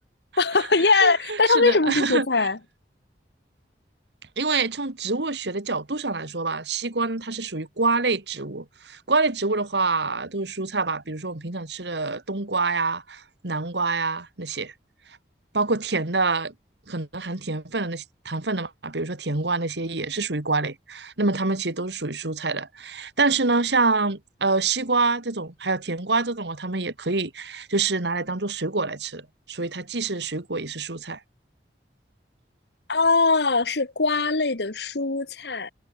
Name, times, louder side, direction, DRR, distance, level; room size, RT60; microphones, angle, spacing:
voice 1, 0.4-2.6 32.9-35.7, left 3 dB, 70° left, 1.4 m, -21 dB
voice 2, 0.9-2.3 4.4-14.7 15.5-16.5 16.9-29.2 29.5-31.2, right 3 dB, 80° right, 2.0 m, -26 dB
head